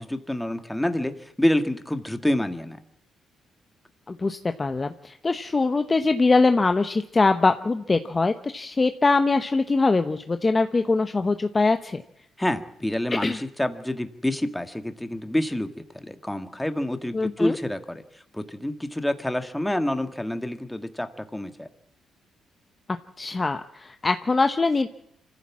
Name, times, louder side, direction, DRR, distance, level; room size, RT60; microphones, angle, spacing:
voice 1, 0.0-2.8 12.4-21.7, left 1 dB, 5° left, 8 dB, 1.8 m, -28 dB
voice 2, 4.1-12.0 13.1-13.4 17.1-17.6 23.2-24.9, left 3 dB, 25° left, 8 dB, 0.9 m, -22 dB
24.5 x 15.0 x 7.4 m, 0.76 s
cardioid pair, 90°, 0 cm